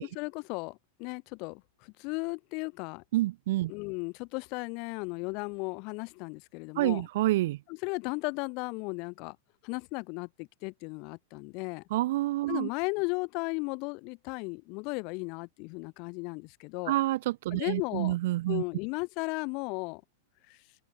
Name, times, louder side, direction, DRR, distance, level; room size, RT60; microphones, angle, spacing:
voice 1, 0.0-3.0 3.7-7.1 7.7-9.4 9.6-11.8 12.5-17.0 17.5-18.2 18.5-20.0 20.5-20.6, left 31 dB, 50° left, 0.6 m, -35 dB
voice 2, 3.1-3.7 6.8-7.6 11.9-12.7 16.9-18.6, right 16 dB, 65° right, 0.4 m, -28 dB
hypercardioid pair, 115°, 0 cm